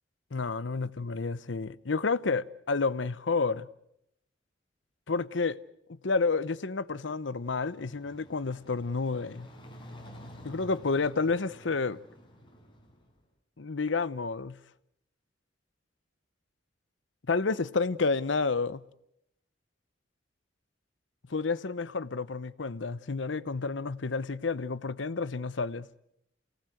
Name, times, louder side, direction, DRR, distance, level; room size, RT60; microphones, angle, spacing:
voice 1, 0.3-3.7 5.1-5.6 5.9-9.5 10.4-12.0 13.6-14.6 17.3-18.8 21.3-25.9, left 4 dB, 85° left, 0.8 m, -30 dB
sound 1, 7.3-13.2, equal, 30° left, 4.9 m, -50 dB
27.5 x 18.5 x 7.9 m
head